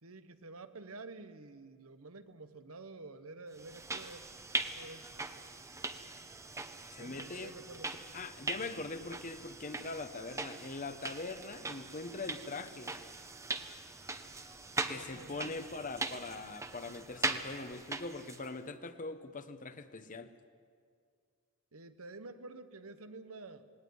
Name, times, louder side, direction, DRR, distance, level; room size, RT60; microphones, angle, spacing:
voice 1, 0.0-4.2 4.6-5.1 7.0-7.9 14.7-15.6 21.7-23.7, right 3 dB, 85° right, 10 dB, 1.2 m, -50 dB
sound 1, 3.6-18.5, right 3 dB, 15° right, 0.9 m, -41 dB
voice 2, 6.9-7.5 8.1-12.9 14.9-20.3, left 3 dB, 40° left, 11 dB, 1.0 m, -42 dB
19.0 x 18.0 x 9.6 m, 2.1 s
head